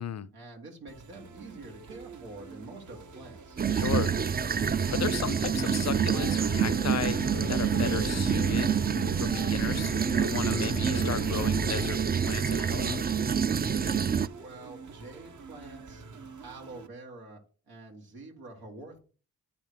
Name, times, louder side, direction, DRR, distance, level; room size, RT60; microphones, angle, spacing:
voice 1, 0.3-3.6 14.2-16.0 16.4-17.4 17.7-19.0, right 2 dB, 85° right, 1.8 m, -46 dB
sound 1, 0.9-16.9, right 4 dB, 50° right, 1.1 m, -48 dB
sound 2, 3.6-14.3, right 7 dB, 25° right, 0.4 m, -27 dB
voice 2, 3.7-4.1 4.9-7.2 7.5-8.8 9.2-9.9 10.2-12.0 12.3-13.1, left 8 dB, 45° left, 0.5 m, -35 dB
sound 3, 5.5-11.9, left 8 dB, 90° left, 0.7 m, -40 dB
9.8 x 3.5 x 4.6 m
supercardioid pair, 45°, 37 cm